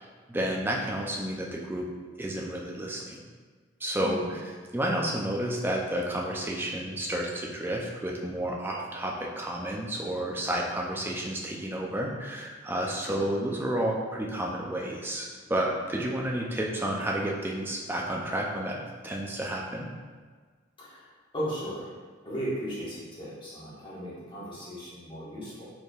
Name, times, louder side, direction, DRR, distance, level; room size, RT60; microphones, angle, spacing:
voice 1, 0.0-1.9 2.2-3.2 3.8-4.4 4.7-19.9, right 1 dB, 10° right, -2 dB, 0.4 m, -31 dB
voice 2, 4.0-4.3 13.1-13.2 20.8-21.1 21.3-21.9 22.2-25.6, equal, 25° left, -8 dB, 1.2 m, -36 dB
4.3 x 3.4 x 2.4 m, 1.5 s
head